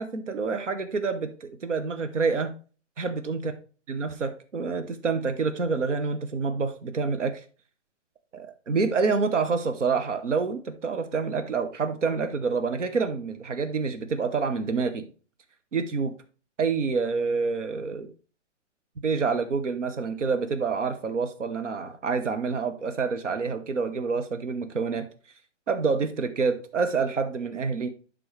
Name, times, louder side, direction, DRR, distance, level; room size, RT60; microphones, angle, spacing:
voice 1, 0.0-2.5 3.0-3.5 3.9-7.4 8.3-15.1 15.7-16.1 16.6-18.1 19.0-25.0 25.7-27.9, right 4 dB, 80° right, 8 dB, 1.0 m, -27 dB
11.5 x 3.9 x 3.2 m, 0.37 s
figure-of-eight pair, 125°, 36 cm